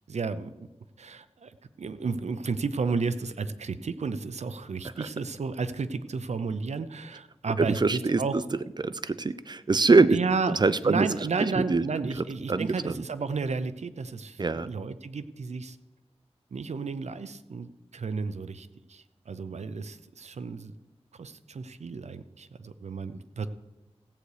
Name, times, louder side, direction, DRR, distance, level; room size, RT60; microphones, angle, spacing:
voice 1, 0.1-0.5 1.0-8.5 10.1-10.6 10.8-15.8 16.5-20.7 21.1-23.5, right 4 dB, 85° right, 13 dB, 0.6 m, -32 dB
voice 2, 7.6-8.4 8.8-10.2 10.5-11.1 11.4-11.8 12.5-13.0 14.4-14.7, right 3 dB, 40° right, 15 dB, 0.5 m, -23 dB
15.5 x 8.1 x 4.9 m, 1.0 s
wide cardioid pair, 75°, 11 cm